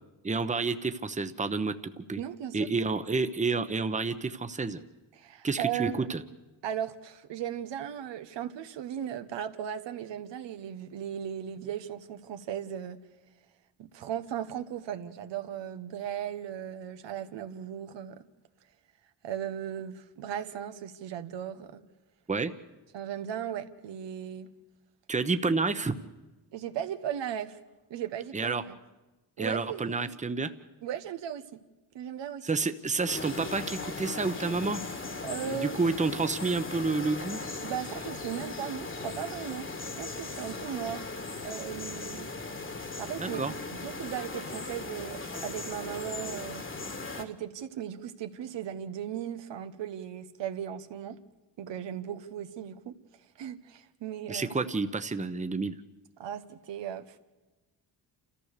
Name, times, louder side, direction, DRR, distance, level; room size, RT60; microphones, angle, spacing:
voice 1, 0.2-2.2 2.5-4.8 5.4-6.2 22.3-22.5 25.1-26.0 28.3-28.6 29.4-30.5 32.4-35.0 35.5-37.4 43.2-43.5 54.3-55.8, right 3 dB, 15° right, 10 dB, 1.0 m, -29 dB
voice 2, 2.2-2.7 5.2-6.1 6.6-13.0 13.8-18.3 19.2-21.8 22.9-24.5 26.5-27.6 27.9-28.8 29.4-30.1 30.8-31.6 31.9-32.4 35.2-35.8 37.6-39.7 40.0-41.0 41.4-42.3 43.0-43.4 43.7-46.7 47.1-51.2 51.6-53.0 53.4-54.5 56.2-57.2, right 9 dB, 80° right, 8 dB, 1.2 m, -37 dB
sound 1, 33.1-47.2, left 3 dB, 30° left, 1.7 m, -38 dB
28.5 x 14.0 x 6.7 m, 1.1 s
cardioid pair, 75°, 43 cm